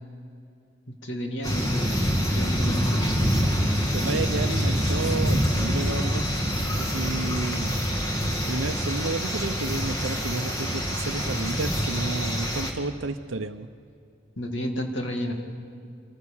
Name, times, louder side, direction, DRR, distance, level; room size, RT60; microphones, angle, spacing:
voice 1, 0.9-3.3 14.4-15.3, equal, 70° left, 3 dB, 2.4 m, -32 dB
sound 1, 1.4-12.7, equal, 15° left, 1.9 m, -26 dB
voice 2, 3.9-6.3 6.8-7.8 8.5-13.7, right 3 dB, 80° right, 7 dB, 0.7 m, -31 dB
27.0 x 14.5 x 7.2 m, 2.4 s
head